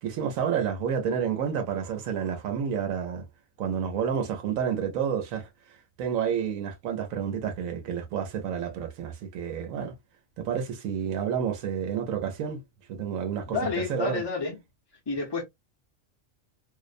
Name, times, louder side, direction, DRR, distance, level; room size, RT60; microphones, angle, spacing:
voice 1, 0.0-3.2 3.6-9.9 10.4-12.6 12.9-13.6 13.9-14.2, right 7 dB, 85° right, 1.0 m, -30 dB
voice 2, 13.5-14.6 15.1-15.4, left 4 dB, 30° left, 0.5 m, -29 dB
2.6 x 2.0 x 2.4 m
omnidirectional pair, 1.4 m